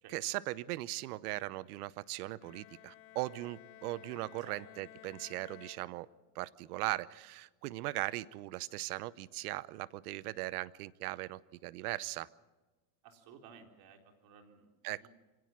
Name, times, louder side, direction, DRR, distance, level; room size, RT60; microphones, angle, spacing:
voice 1, 0.1-6.1 6.3-12.3 14.8-15.1, right 18 dB, 75° right, 20 dB, 0.9 m, -39 dB
Bowed string instrument, 2.4-6.4, left 14 dB, 50° left, 1.9 m, -56 dB
voice 2, 13.0-14.7 15.0-15.1, right 7 dB, 50° right, 4 dB, 3.9 m, -56 dB
25.5 x 17.5 x 7.4 m, 1.2 s
supercardioid pair, 130°, 45 cm